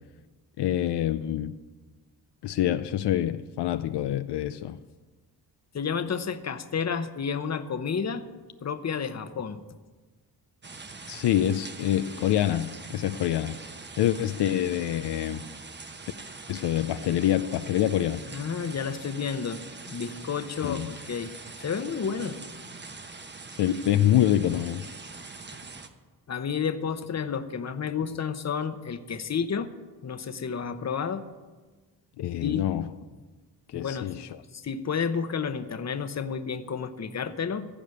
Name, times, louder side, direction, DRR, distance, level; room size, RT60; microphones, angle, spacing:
voice 1, 0.6-1.6 2.4-4.8 11.1-13.6 14.0-15.4 16.5-18.2 20.6-20.9 23.6-24.9 32.2-32.9 33.7-34.3, left 12 dB, 80° left, 11 dB, 0.5 m, -26 dB
voice 2, 5.7-8.2 8.6-9.6 18.3-21.3 21.6-22.4 26.3-29.7 30.0-31.2 32.4-32.6 33.7-34.1 34.5-37.7, left 6 dB, 40° left, 10 dB, 0.9 m, -31 dB
sound 1, 10.6-25.9, right 3 dB, 25° right, 1.0 m, -43 dB
15.0 x 5.0 x 9.2 m, 1.3 s
cardioid pair, 85°, 40 cm